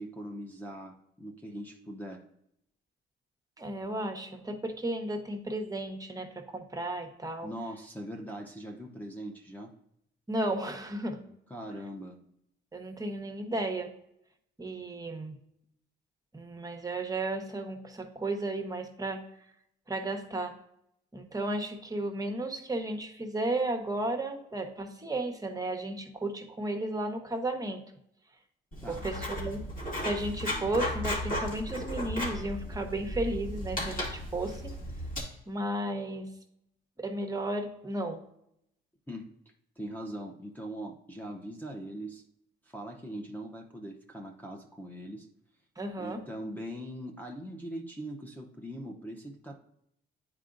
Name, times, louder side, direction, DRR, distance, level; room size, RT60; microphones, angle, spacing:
voice 1, 0.0-2.3 7.4-9.7 11.5-12.2 28.8-29.1 30.5-30.6 39.1-39.3 39.8-42.2 42.6-45.3 46.0-49.6, right 1 dB, 10° left, 1 dB, 0.8 m, -41 dB
voice 2, 3.6-7.5 10.3-11.2 12.7-13.9 14.6-15.3 16.3-19.2 19.9-20.6 21.1-27.8 28.9-29.7 30.0-34.7 35.5-36.3 37.0-38.2 45.8-46.2, right 1 dB, 20° right, 5 dB, 1.0 m, -34 dB
Writing, 28.7-35.2, left 1 dB, 45° left, 2.2 m, -35 dB
9.1 x 4.7 x 2.5 m, 0.76 s
cardioid pair, 90°, 20 cm